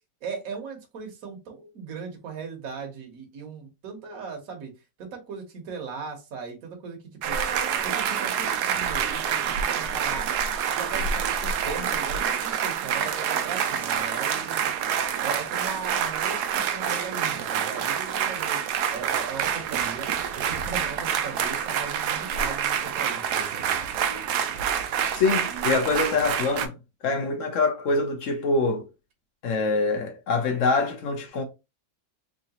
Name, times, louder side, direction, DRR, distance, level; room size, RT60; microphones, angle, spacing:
voice 1, 0.2-4.7 5.0-7.0 7.2-7.5 7.8-10.3 10.7-14.7 15.2-18.6 18.9-20.1 20.3-23.8, right 5 dB, 60° right, 1.3 m, -38 dB
sound 1, 7.2-26.7, right 8 dB, 75° right, 1.1 m, -27 dB
voice 2, 25.1-26.7 27.0-28.8 29.4-31.4, left 3 dB, 55° left, 1.2 m, -24 dB
3.9 x 3.0 x 2.8 m
omnidirectional pair, 1.8 m